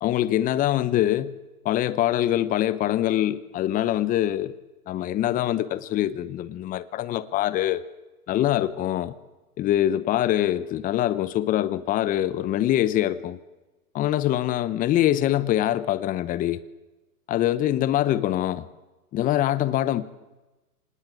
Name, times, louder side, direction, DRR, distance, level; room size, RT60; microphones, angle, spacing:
voice 1, 0.0-1.3 1.6-4.5 4.9-7.8 8.3-9.1 9.6-13.4 13.9-16.6 17.3-18.6 19.1-20.0, left 13 dB, 20° left, 0.9 m, -24 dB
25.0 x 19.5 x 9.3 m
hypercardioid pair, 130°, 46 cm